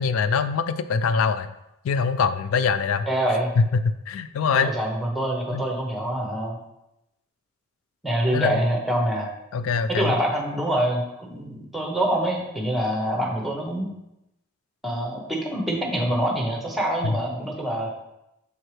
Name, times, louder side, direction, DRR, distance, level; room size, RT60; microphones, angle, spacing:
voice 1, 0.0-1.5 1.8-3.1 3.6-4.7 5.5-5.6 8.3-8.6 9.5-10.1 17.0-17.2, left 5 dB, 90° left, 12 dB, 0.3 m, -23 dB
voice 2, 3.1-3.5 4.5-6.6 8.0-9.3 9.9-13.9 14.8-17.9, right 1 dB, ahead, -1 dB, 0.9 m, -25 dB
6.7 x 4.5 x 3.2 m, 0.88 s
head